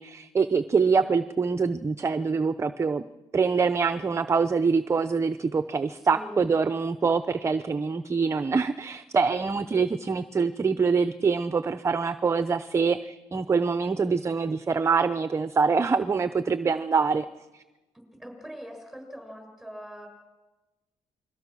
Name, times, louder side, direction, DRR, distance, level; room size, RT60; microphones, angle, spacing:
voice 1, 0.0-3.0 3.3-17.3 17.5-17.6, right 5 dB, 25° right, 12 dB, 0.7 m, -25 dB
voice 2, 6.0-6.5 17.9-20.1, equal, ahead, 3 dB, 7.0 m, -42 dB
28.5 x 22.0 x 6.3 m, 1.1 s
cardioid pair, 125°, 12 cm